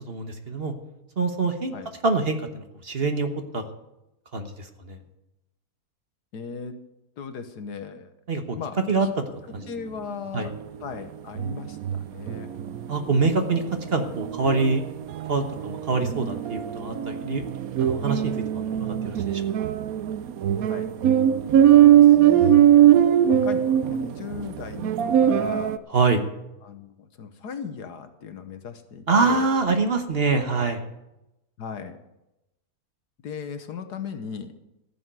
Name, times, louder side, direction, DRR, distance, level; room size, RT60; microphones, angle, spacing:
voice 1, 0.1-0.7 1.2-1.7 2.0-3.3 3.5-3.6 4.3-5.0 8.3-8.6 8.9-9.1 9.5-9.6 10.3-10.5 12.9-13.6 13.9-14.8 15.3-17.4 17.8-19.7 25.9-26.3 29.1-30.9, right 4 dB, 40° right, 6 dB, 1.3 m, -25 dB
voice 2, 6.3-6.8 7.2-8.1 8.6-9.1 9.7-10.5 10.8-12.5 20.7-20.9 21.6-22.6 23.3-25.7 26.6-29.5 31.6-32.0 33.2-34.5, left 6 dB, 85° left, 8 dB, 1.7 m, -37 dB
sound 1, 10.5-10.6 10.9-11.0 11.4-25.8, right 10 dB, 70° right, 1.1 m, -20 dB
14.5 x 7.1 x 9.1 m, 0.92 s
omnidirectional pair, 1.7 m